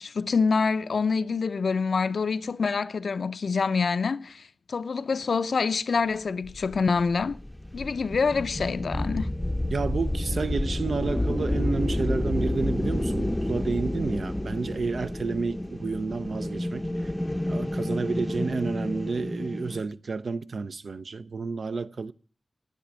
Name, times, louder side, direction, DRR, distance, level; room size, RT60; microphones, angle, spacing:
voice 1, 0.0-7.4 7.7-9.3, left 5 dB, 90° left, 0.4 m, -26 dB
sound 1, 6.4-19.8, left 1 dB, 15° left, 0.5 m, -30 dB
voice 2, 9.7-16.9 17.5-22.1, right 4 dB, 80° right, 0.5 m, -30 dB
10.0 x 9.1 x 6.0 m
wide cardioid pair, 75°, 0 cm